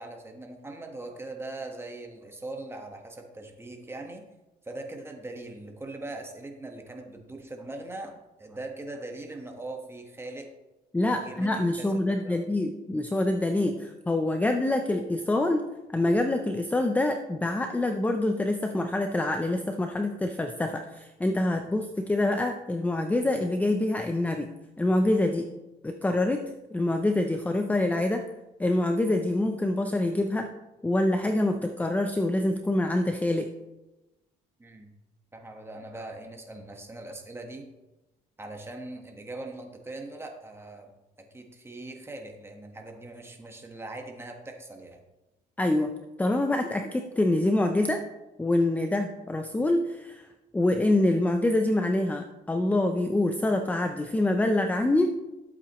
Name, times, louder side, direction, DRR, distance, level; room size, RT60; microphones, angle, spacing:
voice 1, 0.0-4.3 4.6-10.5 11.0-12.4 21.5-21.7 34.6-34.9 35.3-37.6 38.4-40.9 41.2-45.0, right 2 dB, 15° right, 3 dB, 1.4 m, -41 dB
voice 2, 10.9-15.6 15.9-24.5 24.8-25.5 25.8-26.4 26.7-28.3 28.6-30.5 30.8-33.5 45.6-45.9 46.2-48.0 48.4-50.3 50.5-55.1, left 1 dB, 10° left, 6 dB, 0.6 m, -26 dB
11.5 x 8.1 x 3.1 m, 1.0 s
cardioid pair, 110°, 17 cm